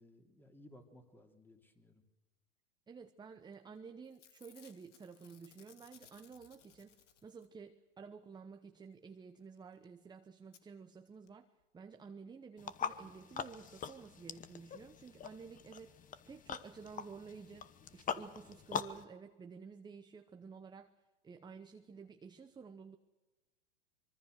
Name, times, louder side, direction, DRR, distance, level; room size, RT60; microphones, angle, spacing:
voice 1, 0.0-2.0, left 1 dB, 5° left, 5 dB, 2.9 m, -60 dB
voice 2, 2.9-7.0 7.2-11.5 11.7-20.9 21.2-23.0, right 5 dB, 10° right, 7 dB, 0.9 m, -52 dB
Packing tape duct tape / Tearing, 3.5-3.8 4.0-7.6 9.6-9.7 9.8-9.9 10.5-10.6 11.3-11.4 11.6-11.7, left 9 dB, 85° left, 2.1 m, -63 dB
sound 1, 12.6-19.0, left 7 dB, 20° left, 1.2 m, -43 dB
25.0 x 23.0 x 6.5 m, 1.2 s
hypercardioid pair, 120°, 35 cm